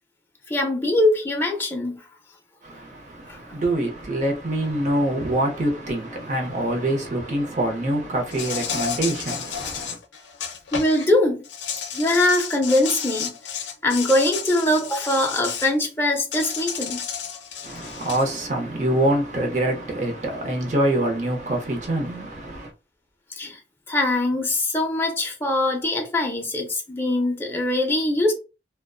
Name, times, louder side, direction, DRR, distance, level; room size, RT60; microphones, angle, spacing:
voice 1, 0.5-2.0 3.3-3.4 10.7-11.4 11.9-13.3 13.8-17.1 23.4-23.6 23.9-28.3, left 1 dB, 15° left, 0.5 m, -22 dB
voice 2, 2.6-10.0 17.6-22.7, right 1 dB, 45° right, 0.7 m, -25 dB
Insect, 8.3-11.1 11.4-15.7 16.3-18.2, left 7 dB, 85° left, 0.5 m, -32 dB
2.5 x 2.2 x 2.3 m
head